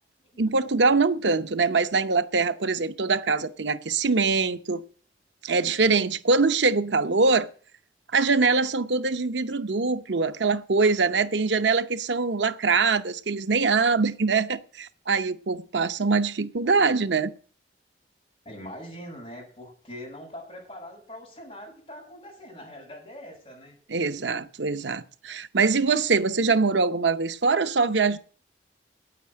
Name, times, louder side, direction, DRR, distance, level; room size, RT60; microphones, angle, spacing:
voice 1, 0.4-4.8 5.4-7.5 8.1-17.3 23.9-28.2, right 4 dB, 85° right, 0.8 m, -23 dB
voice 2, 18.4-23.7, equal, 30° left, 7.4 m, -42 dB
9.2 x 9.2 x 8.7 m
head